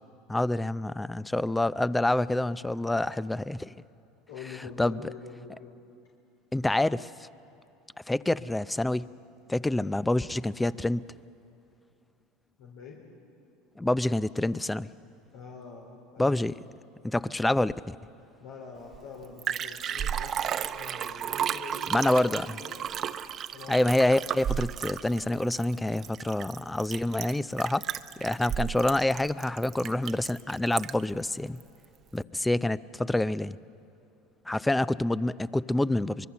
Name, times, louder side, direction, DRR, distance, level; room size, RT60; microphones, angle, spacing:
voice 1, 0.3-3.7 4.8-5.0 6.5-7.3 8.1-9.1 9.5-11.0 13.8-14.9 16.2-16.5 17.0-18.0 21.9-22.6 23.7-27.9 28.2-31.6 32.1-33.6 34.5-36.3, left 1 dB, 10° left, 18 dB, 0.5 m, -27 dB
voice 2, 4.3-5.8 12.6-13.0 15.3-16.4 18.4-22.8 23.5-23.8 32.5-32.7, left 5 dB, 75° left, -1 dB, 3.4 m, -45 dB
Liquid, 18.9-19.0 19.2-31.1 31.6-31.7, right 9 dB, 40° right, 0.8 m, -33 dB
24.0 x 22.0 x 7.1 m, 2.7 s
supercardioid pair, 100°, 0 cm